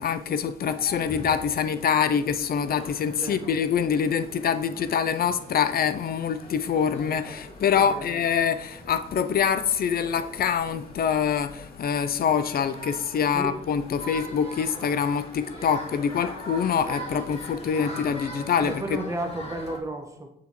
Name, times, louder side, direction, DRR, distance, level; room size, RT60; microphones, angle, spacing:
voice 1, 0.0-19.0, left 7 dB, 50° left, 0.5 m, -25 dB
sound 1, 0.6-19.8, equal, 30° left, 1.8 m, -42 dB
voice 2, 3.1-3.5 7.7-8.2 13.3-13.6 18.6-20.3, right 1 dB, 15° right, 1.2 m, -33 dB
6.8 x 6.3 x 3.0 m
cardioid pair, 90°, 20 cm